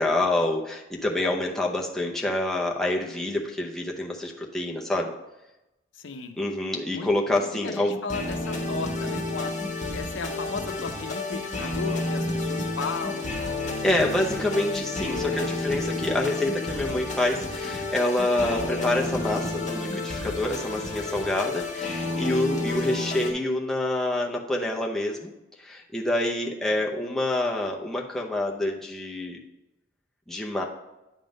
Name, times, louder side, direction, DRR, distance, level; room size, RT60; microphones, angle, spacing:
voice 1, 0.0-5.1 6.4-8.0 13.8-25.3 25.6-29.4 30.3-30.6, left 1 dB, ahead, -2 dB, 0.7 m, -27 dB
voice 2, 5.9-6.4 6.9-7.1 7.6-9.5 9.9-13.4 22.9-23.1, left 4 dB, 85° left, 7 dB, 0.6 m, -35 dB
sound 1, 7.4-23.3, left 2 dB, 40° left, 1.2 m, -30 dB
9.1 x 3.7 x 5.1 m, 0.97 s
head